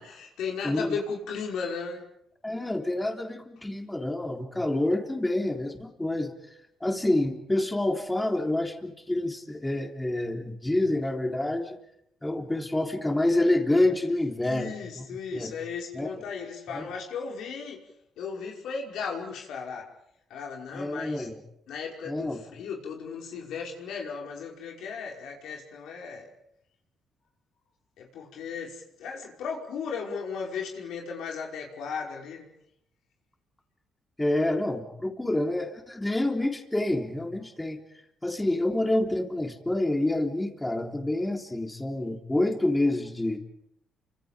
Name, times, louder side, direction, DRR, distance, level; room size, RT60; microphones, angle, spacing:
voice 1, 0.0-2.0 14.4-17.8 18.2-19.8 20.3-21.3 21.7-26.3 28.0-32.5, left 5 dB, 80° left, -1 dB, 5.5 m, -36 dB
voice 2, 0.6-0.9 2.4-6.3 6.8-11.8 12.2-15.0 15.3-15.5 15.9-16.1 16.7-16.9 20.7-21.3 22.1-22.4 34.2-37.8 38.2-43.4, left 1 dB, 10° left, 3 dB, 3.6 m, -27 dB
30.0 x 25.5 x 5.2 m, 0.76 s
cardioid pair, 90°, 0 cm